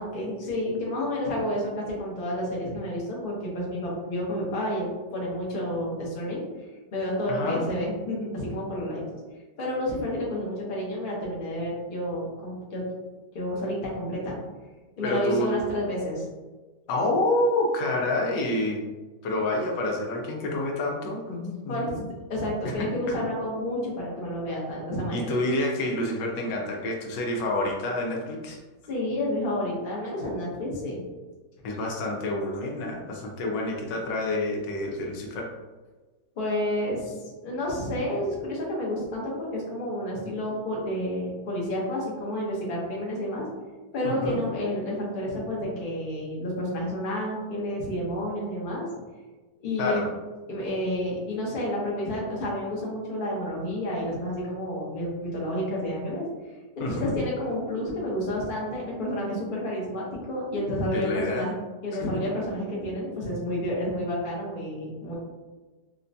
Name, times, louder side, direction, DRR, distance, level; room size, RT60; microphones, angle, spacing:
voice 1, 0.0-4.9 5.1-6.4 6.9-9.0 9.6-12.8 13.3-14.4 15.0-16.3 21.7-21.9 22.3-25.3 28.9-31.0 36.4-37.1 37.4-43.5 43.9-48.8 49.6-50.0 50.5-56.2 56.8-61.5 61.8-65.1, left 1 dB, 40° left, -4 dB, 0.8 m, -30 dB
voice 2, 7.3-7.6 15.0-15.5 16.9-18.8 19.2-22.1 22.6-22.7 23.1-23.2 25.1-28.6 31.6-35.5 44.0-44.4 49.8-50.1 56.8-57.1 60.9-61.5, left 1 dB, 85° left, 0 dB, 1.3 m, -28 dB
4.1 x 2.2 x 2.6 m, 1.3 s
omnidirectional pair, 1.9 m